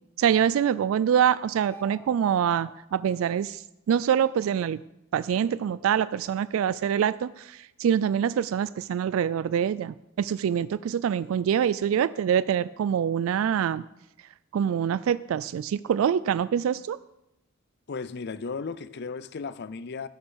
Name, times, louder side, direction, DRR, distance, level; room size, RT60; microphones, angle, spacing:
voice 1, 0.2-4.8 5.1-13.8 14.5-17.0, right 8 dB, 85° right, 0.3 m, -25 dB
sound 1, 1.5-2.7, left 1 dB, 10° left, 1.0 m, -46 dB
voice 2, 17.9-20.1, left 4 dB, 55° left, 0.5 m, -35 dB
14.5 x 6.7 x 6.3 m
head